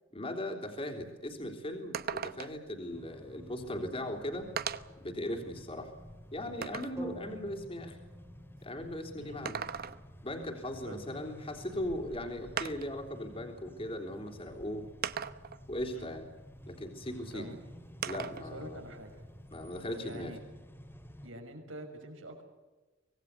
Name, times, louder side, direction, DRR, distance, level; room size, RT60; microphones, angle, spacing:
voice 1, 0.1-4.5 5.0-5.9 6.3-8.0 8.6-9.6 10.2-14.9 15.7-16.2 16.7-17.5 18.0-18.8 19.5-20.3, left 1 dB, 30° left, 3 dB, 3.4 m, -38 dB
sound 1, 1.0-1.1 1.4-1.5 1.9-2.7 3.8-3.9 4.6-5.0 5.6-7.0 9.2-10.2 11.7-11.8 12.6-13.0 14.0-14.1 15.0-15.7 18.0-18.5 18.9-20.0, right 7 dB, 50° right, 1.0 m, -38 dB
sound 2, 2.9-21.3, equal, 10° left, 2.5 m, -51 dB
sound 3, 7.0-11.0, equal, 15° right, 2.9 m, -51 dB
voice 2, 18.3-19.2 20.0-20.4 21.2-22.4, right 1 dB, 80° right, 4 dB, 6.1 m, -46 dB
25.5 x 19.5 x 8.2 m, 1.2 s
head